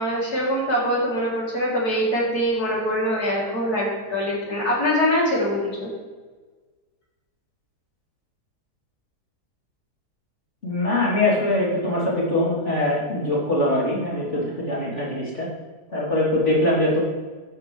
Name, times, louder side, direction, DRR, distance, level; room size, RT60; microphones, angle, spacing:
voice 1, 0.0-5.9, equal, 65° left, -5 dB, 3.9 m, -23 dB
voice 2, 10.6-15.5 15.9-17.0, left 1 dB, 45° left, -6 dB, 3.7 m, -22 dB
12.5 x 8.5 x 3.4 m, 1.4 s
omnidirectional pair, 1.8 m